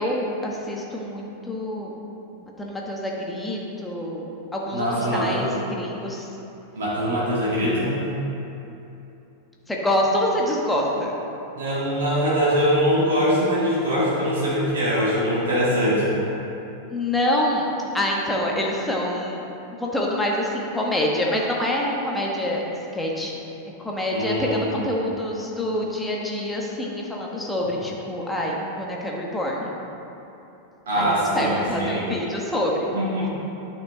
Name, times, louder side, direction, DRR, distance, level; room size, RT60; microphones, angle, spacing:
voice 1, 0.0-1.9 2.4-6.3 9.7-11.2 16.9-17.7 17.9-19.4 19.8-22.6 22.9-23.4 23.8-29.8 30.9-32.9, left 1 dB, 5° left, -2 dB, 1.2 m, -26 dB
voice 2, 4.7-5.5 6.8-8.0 11.6-16.1 24.1-24.9 30.9-32.0 32.9-33.3, equal, 65° right, -8 dB, 1.7 m, -22 dB
10.5 x 5.9 x 3.2 m, 3.0 s
figure-of-eight pair, 90°, 0 cm